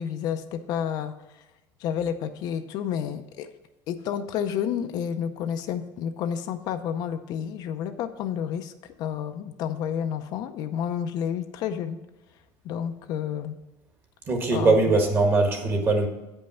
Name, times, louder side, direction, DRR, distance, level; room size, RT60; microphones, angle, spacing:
voice 1, 0.0-1.4 1.8-3.5 3.9-8.7 9.0-12.0 12.6-13.6 14.5-14.8, left 8 dB, 55° left, 8 dB, 0.6 m, -30 dB
voice 2, 14.3-16.1, right 3 dB, 25° right, 4 dB, 1.4 m, -21 dB
8.6 x 5.4 x 5.6 m, 1.0 s
cardioid pair, 170°, 8 cm